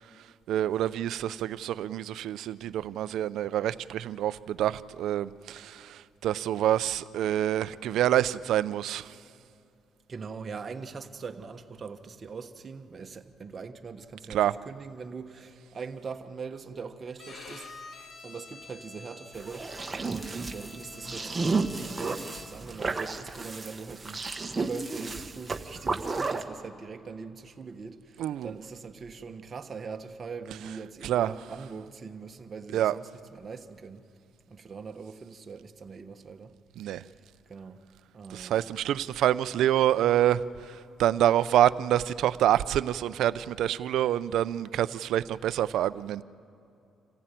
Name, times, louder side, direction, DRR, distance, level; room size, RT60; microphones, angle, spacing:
voice 1, 0.5-9.1 14.3-14.5 28.2-28.5 31.0-31.3 32.7-32.9 36.8-37.0 38.3-40.4 41.0-46.2, right 12 dB, 80° right, 0.5 m, -26 dB
voice 2, 10.1-17.7 18.2-19.7 20.0-24.2 24.6-34.0 34.5-36.5 36.8-37.1 37.5-37.8 38.1-38.7, right 5 dB, 40° right, 1.3 m, -42 dB
Bowed string instrument, 17.2-22.7, left 4 dB, 55° left, 1.8 m, -48 dB
sound 1, 19.3-26.4, right 3 dB, 25° right, 1.4 m, -32 dB
26.5 x 15.5 x 9.1 m
cardioid pair, 90°, 0 cm